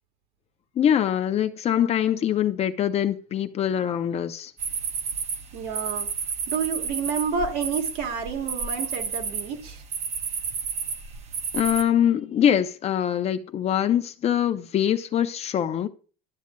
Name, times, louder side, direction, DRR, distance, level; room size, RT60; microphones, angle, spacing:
voice 1, 0.8-4.5 11.5-15.9, left 10 dB, 35° left, 0.6 m, -23 dB
sound 1, 4.6-11.8, right 6 dB, 40° right, 0.8 m, -31 dB
voice 2, 5.5-6.1 6.5-9.8, right 6 dB, 65° right, 1.5 m, -29 dB
11.5 x 7.1 x 2.3 m
supercardioid pair, 110°, 18 cm